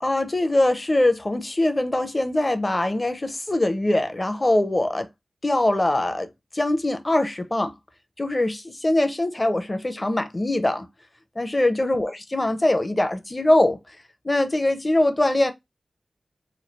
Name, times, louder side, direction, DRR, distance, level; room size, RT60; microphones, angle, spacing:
voice 1, 0.0-5.1 5.4-6.3 6.5-7.7 8.2-10.9 11.4-13.8 14.2-15.5, left 1 dB, 25° left, 0.5 m, -22 dB
3.1 x 2.3 x 4.2 m
wide cardioid pair, 105°, 0 cm